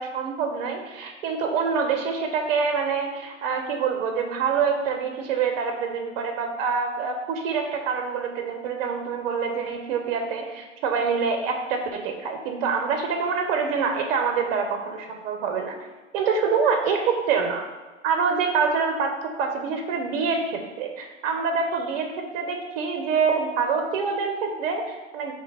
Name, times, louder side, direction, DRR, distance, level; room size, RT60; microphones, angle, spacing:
voice 1, 0.0-15.8 16.1-17.7 18.0-25.3, right 5 dB, 50° right, 4 dB, 0.7 m, -26 dB
3.4 x 2.9 x 4.7 m, 1.2 s
hypercardioid pair, 115°, 37 cm